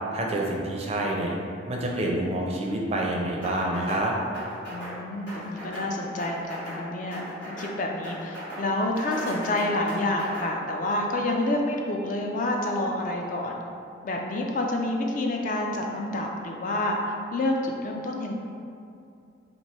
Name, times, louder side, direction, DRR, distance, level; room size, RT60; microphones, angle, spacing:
voice 1, 0.1-1.3 1.7-4.1, right 1 dB, 35° right, -1 dB, 0.4 m, -27 dB
sound 1, 3.4-4.1 4.3-5.0 5.3-5.9 6.2-6.8 7.1-7.8 8.0-8.7 9.0-10.5, equal, 70° left, 1.4 m, -37 dB
voice 2, 4.7-13.6 14.0-17.0 17.3-18.3, left 1 dB, 45° left, 1 dB, 0.3 m, -28 dB
2.9 x 2.6 x 4.3 m, 2.5 s
head